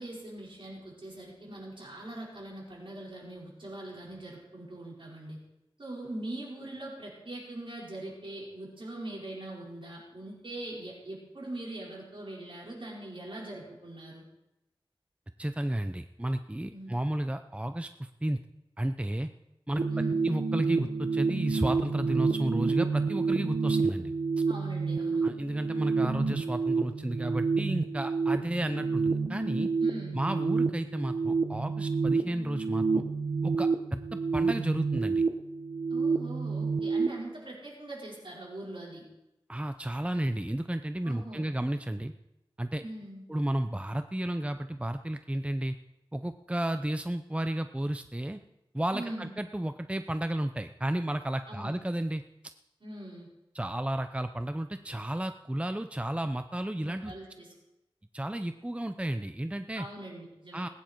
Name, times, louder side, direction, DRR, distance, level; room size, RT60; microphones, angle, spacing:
voice 1, 0.0-5.4 5.8-14.2 16.7-17.0 19.9-20.3 24.5-25.3 29.8-30.2 35.9-39.1 41.0-41.5 42.8-43.3 48.9-49.3 51.5-51.8 52.8-53.3 56.8-57.5 59.7-60.7, right 1 dB, 60° right, -4 dB, 5.4 m, -42 dB
voice 2, 15.4-18.4 18.8-19.3 19.7-19.8 20.2-24.1 25.2-29.7 30.1-33.0 33.4-35.2 39.5-42.1 42.6-42.8 43.3-45.8 46.1-48.4 48.7-52.2 53.5-57.1 58.1-59.9 60.5-60.7, right 1 dB, 10° right, 9 dB, 0.6 m, -32 dB
sound 1, 19.8-37.1, right 4 dB, 90° right, 1.0 m, -29 dB
20.0 x 9.7 x 4.6 m, 0.89 s
wide cardioid pair, 55°, 10 cm